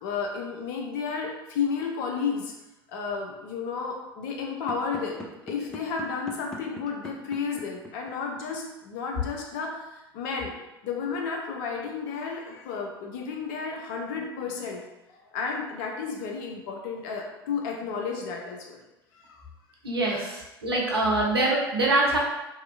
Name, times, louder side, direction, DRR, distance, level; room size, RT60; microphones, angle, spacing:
voice 1, 0.0-2.5 2.9-9.9 10.1-10.5 10.8-14.8 15.1-18.8 19.1-19.4 20.1-20.3, left 5 dB, 55° left, 1 dB, 0.6 m, -32 dB
sound 1, 4.6-8.6, left 1 dB, 5° left, 0.4 m, -41 dB
voice 2, 19.8-22.2, right 2 dB, 85° right, -3 dB, 0.6 m, -24 dB
2.8 x 2.2 x 2.4 m, 0.97 s
figure-of-eight pair, 75°, 13 cm